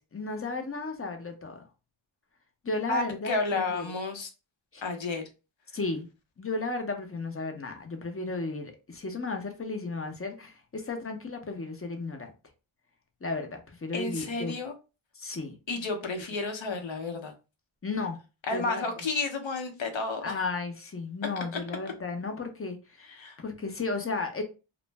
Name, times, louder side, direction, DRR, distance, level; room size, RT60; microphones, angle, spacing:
voice 1, 0.0-1.6 2.6-3.9 4.7-4.8 5.7-6.1 6.4-12.3 13.2-14.5 15.1-15.6 17.8-18.2 18.5-18.9 20.2-24.4, left 3 dB, 30° left, 0.6 m, -34 dB
voice 2, 2.9-4.3 4.8-5.2 13.9-14.7 15.7-17.3 18.5-20.4 23.1-23.4, left 3 dB, 65° left, 0.8 m, -31 dB
2.4 x 2.1 x 3.2 m
wide cardioid pair, 75°, 50 cm